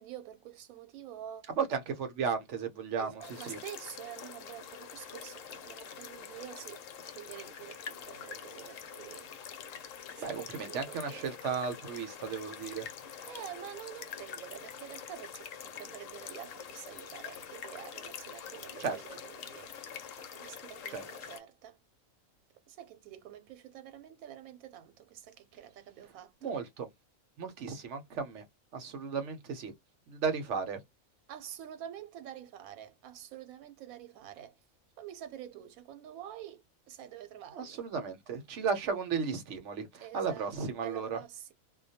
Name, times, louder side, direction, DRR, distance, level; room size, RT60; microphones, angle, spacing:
voice 1, 0.0-1.5 3.0-9.3 10.1-11.3 13.2-19.7 20.1-21.8 22.7-26.6 31.3-34.6 35.0-37.8 40.0-40.5 40.8-41.5, right 11 dB, 90° right, 1.0 m, -47 dB
voice 2, 1.5-3.6 10.2-12.9 18.8-19.0 20.9-21.0 26.4-26.9 27.4-28.4 28.7-29.7 30.1-30.8 37.5-41.2, right 5 dB, 65° right, 0.9 m, -34 dB
sound 1, 3.2-21.4, left 7 dB, 75° left, 0.9 m, -45 dB
2.2 x 2.2 x 2.6 m
omnidirectional pair, 1.4 m